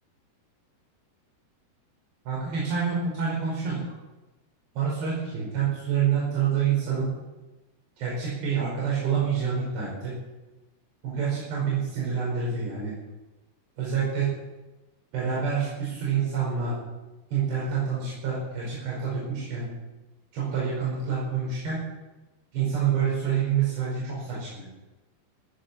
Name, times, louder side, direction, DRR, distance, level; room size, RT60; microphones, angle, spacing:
voice 1, 2.3-3.8 4.7-7.1 8.0-10.2 11.0-13.0 13.8-14.3 15.1-16.8 17.3-19.7 20.3-21.8 22.5-24.7, right 7 dB, 75° right, -6 dB, 7.6 m, -27 dB
15.0 x 10.0 x 9.6 m, 1.1 s
omnidirectional pair, 4.9 m